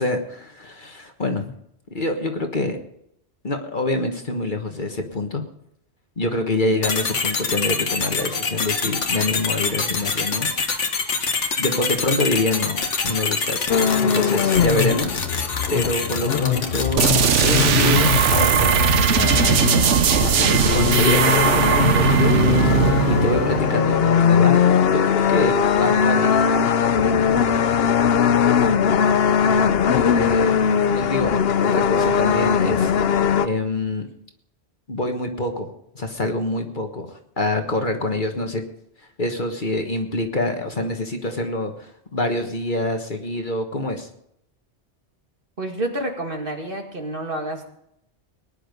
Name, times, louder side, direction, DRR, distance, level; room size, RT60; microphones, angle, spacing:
voice 1, 0.0-1.5 1.9-2.8 3.4-5.4 6.2-10.5 11.6-15.3 15.7-17.1 17.4-19.8 20.7-24.6 24.9-26.3 30.1-31.4 31.6-33.1 33.4-34.1 34.9-38.6 39.2-44.1, left 2 dB, 45° left, 5 dB, 1.6 m, -26 dB
sound 1, 6.8-18.4, left 4 dB, 90° left, 1.8 m, -26 dB
sound 2, 13.7-33.5, left 7 dB, 60° left, 0.9 m, -20 dB
sound 3, 17.0-24.5, right 7 dB, 85° right, 1.2 m, -19 dB
voice 2, 45.6-47.7, right 1 dB, 50° right, 2 dB, 2.4 m, -29 dB
19.5 x 10.5 x 5.3 m, 0.76 s
omnidirectional pair, 1.2 m